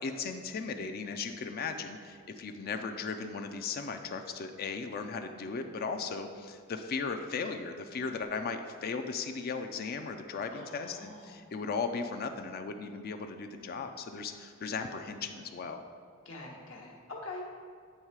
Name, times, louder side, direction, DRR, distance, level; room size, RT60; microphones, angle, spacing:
voice 1, 0.0-15.8, left 4 dB, 45° left, 6 dB, 0.4 m, -37 dB
voice 2, 10.5-11.5 16.2-17.5, left 2 dB, 70° left, -1 dB, 1.2 m, -44 dB
8.8 x 3.2 x 4.7 m, 2.1 s
head